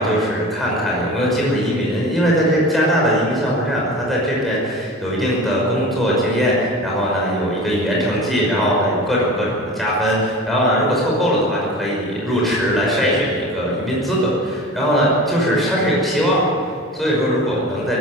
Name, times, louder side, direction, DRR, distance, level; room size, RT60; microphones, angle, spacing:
voice 1, 0.0-18.0, equal, ahead, -6 dB, 5.5 m, -20 dB
19.0 x 16.0 x 9.5 m, 2.3 s
head